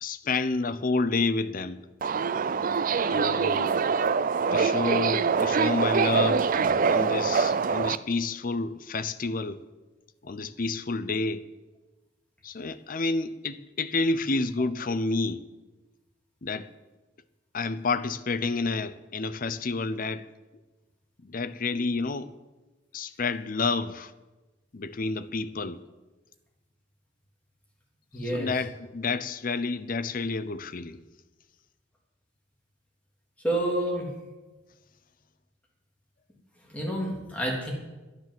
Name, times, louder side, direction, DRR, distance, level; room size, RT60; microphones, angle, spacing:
voice 1, 0.0-1.8 3.1-3.9 4.5-6.5 6.8-9.6 10.2-11.5 12.4-15.4 16.4-16.7 17.5-20.3 21.2-22.3 22.9-24.1 24.7-25.8 28.2-31.0, left 3 dB, 50° left, 0.7 m, -29 dB
Subway metro underground, 2.0-8.0, right 5 dB, 45° right, 0.4 m, -24 dB
voice 2, 28.1-28.5 33.4-34.1 36.7-37.7, right 1 dB, 5° left, 3.3 m, -28 dB
12.0 x 9.9 x 7.6 m
head